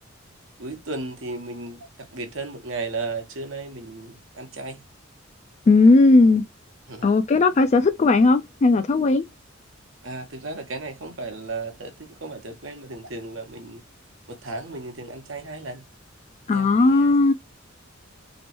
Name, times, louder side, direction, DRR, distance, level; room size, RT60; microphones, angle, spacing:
voice 1, 0.6-4.8 6.2-6.4 6.9-7.1 10.0-13.8 14.3-15.8 16.5-17.2, right 3 dB, 70° right, 1.0 m, -35 dB
voice 2, 5.7-6.4 7.0-9.2 16.5-17.3, left 3 dB, 35° left, 0.3 m, -17 dB
3.1 x 3.0 x 2.9 m
head